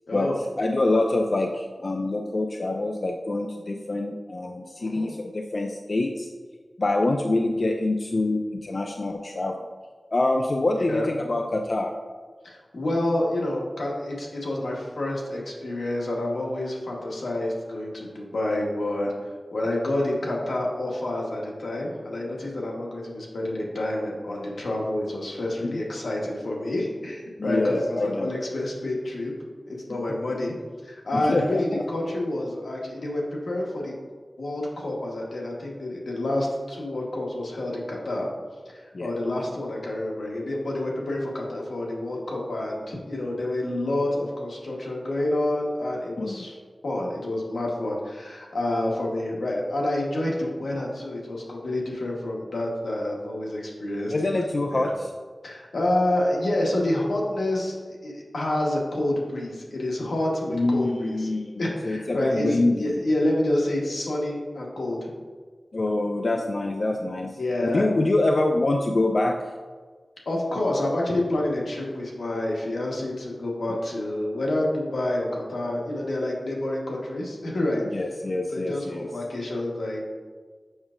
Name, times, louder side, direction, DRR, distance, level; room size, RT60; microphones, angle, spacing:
voice 1, 0.6-6.3 6.8-9.6 10.1-12.0 25.6-25.8 27.4-28.4 31.1-31.8 38.9-39.1 46.2-46.4 54.1-55.1 60.5-63.0 65.7-67.4 67.7-69.4 77.9-79.1, left 2 dB, 55° left, 3 dB, 0.4 m, -25 dB
voice 2, 4.8-5.1 10.9-11.1 12.4-19.1 19.5-29.3 29.7-30.5 30.8-33.9 34.4-38.3 38.7-46.5 46.8-54.3 54.7-54.9 55.4-57.7 58.0-61.3 61.6-65.1 67.4-67.9 70.2-77.8 78.5-80.0, left 1 dB, 90° left, -2 dB, 1.2 m, -28 dB
7.2 x 5.9 x 2.5 m, 1.5 s
wide cardioid pair, 55°, 0 cm